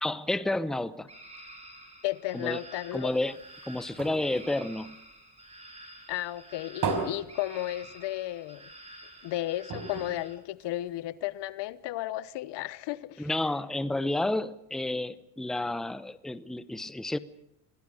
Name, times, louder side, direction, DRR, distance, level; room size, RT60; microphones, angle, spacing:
voice 1, 0.0-1.1 2.3-2.6 2.9-3.3 3.7-5.0 13.2-17.2, left 2 dB, ahead, 0.8 m, -30 dB
sound 1, 1.1-10.4, right 1 dB, 15° right, 5.4 m, -49 dB
voice 2, 2.0-3.1 6.1-8.7 9.2-13.3, left 15 dB, 65° left, 1.0 m, -34 dB
sound 2, 3.1-5.7 6.1-8.3 8.7-8.8 9.1-9.2 9.7-11.2 11.8-11.9, right 4 dB, 45° right, 5.1 m, -37 dB
26.0 x 17.5 x 6.5 m
cardioid pair, 110°, 44 cm